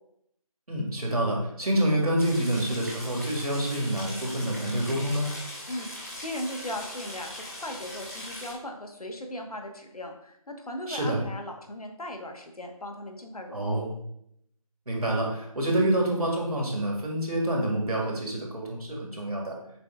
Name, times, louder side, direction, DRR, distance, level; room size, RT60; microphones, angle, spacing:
voice 1, 0.7-5.3 10.9-11.2 13.5-13.9 14.9-19.6, right 1 dB, 75° right, -1 dB, 1.7 m, -27 dB
sound 1, 2.2-8.5, left 1 dB, 25° left, 0.8 m, -40 dB
voice 2, 5.7-13.9, left 1 dB, 80° left, 3 dB, 1.1 m, -38 dB
6.5 x 2.3 x 3.5 m, 0.74 s
figure-of-eight pair, 175°, 19 cm